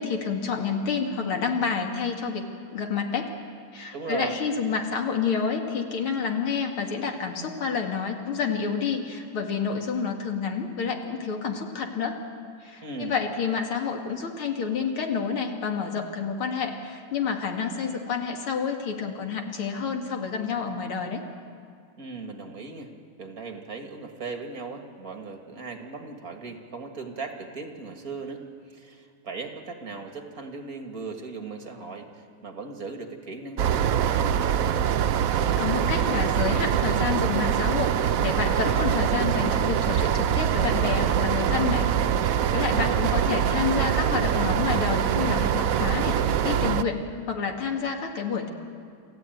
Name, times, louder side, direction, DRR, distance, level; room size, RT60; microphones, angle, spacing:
voice 1, 0.0-2.4 2.7-3.3 3.7-12.2 12.6-21.2 35.3-41.9 42.2-48.5, left 6 dB, 90° left, 3 dB, 2.8 m, -29 dB
voice 2, 3.9-4.4 12.8-13.2 22.0-22.9 23.2-34.4 42.5-43.1, right 4 dB, 45° right, 4 dB, 2.1 m, -38 dB
sound 1, 33.6-46.8, right 9 dB, 85° right, 0.7 m, -24 dB
28.0 x 14.5 x 9.1 m, 2.3 s
omnidirectional pair, 2.3 m